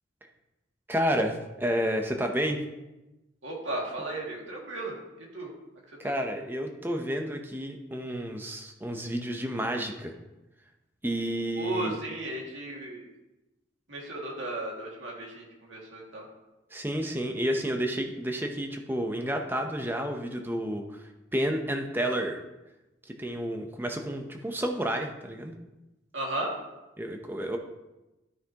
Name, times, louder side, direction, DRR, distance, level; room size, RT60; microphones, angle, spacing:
voice 1, 0.9-2.6 6.0-10.1 11.0-12.0 16.7-22.4 23.1-25.5 27.0-27.6, equal, 10° right, 4 dB, 0.7 m, -30 dB
voice 2, 3.4-5.5 6.0-6.1 11.6-13.0 13.9-16.3 26.1-26.5, right 1 dB, 90° right, -2 dB, 2.2 m, -35 dB
12.5 x 5.8 x 2.9 m, 1.0 s
head